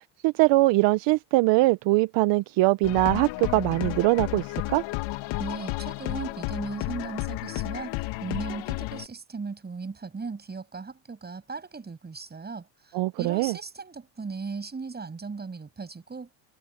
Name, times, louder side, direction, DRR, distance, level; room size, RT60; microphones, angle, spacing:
voice 1, 0.0-4.8 12.9-13.6, right 20 dB, 60° right, 1.0 m, -22 dB
sound 1, 2.8-9.1, left 19 dB, 65° left, 1.7 m, -32 dB
voice 2, 5.4-16.3, right 4 dB, 20° right, 7.3 m, -37 dB
supercardioid pair, 110°, 48 cm